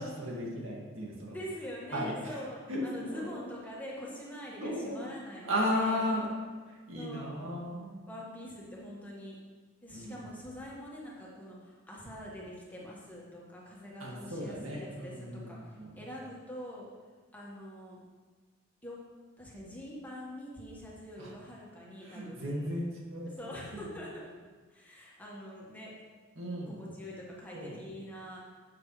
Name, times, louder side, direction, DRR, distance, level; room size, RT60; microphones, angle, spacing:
voice 1, 0.0-1.4 1.9-2.4 2.7-2.8 3.1-3.4 4.6-5.1 5.4-6.3 6.7-7.9 9.9-10.2 14.0-15.9 21.2-21.3 22.0-23.9 26.4-26.8 27.5-27.8, equal, 75° right, -3 dB, 2.2 m, -35 dB
voice 2, 1.3-6.2 7.0-7.5 8.1-9.4 9.8-16.9 17.3-18.0 18.8-19.0 19.4-22.7 23.4-24.3 24.7-25.9 26.7-28.4, equal, 10° left, -5 dB, 1.7 m, -44 dB
12.0 x 8.4 x 3.3 m, 1.5 s
head